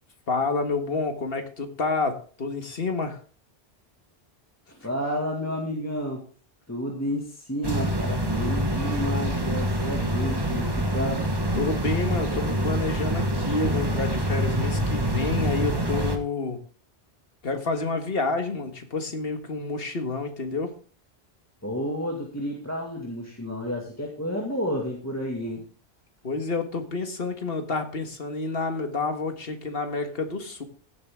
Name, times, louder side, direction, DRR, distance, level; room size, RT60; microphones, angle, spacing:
voice 1, 0.3-3.2 11.6-16.6 17.4-20.7 26.2-30.6, left 3 dB, 60° left, 6 dB, 1.8 m, -29 dB
voice 2, 4.7-6.2 6.7-11.2 21.6-25.6, equal, 15° left, -1 dB, 2.1 m, -31 dB
sound 1, 7.6-16.2, equal, 20° right, 1.3 m, -26 dB
16.0 x 7.9 x 3.7 m, 0.40 s
omnidirectional pair, 1.1 m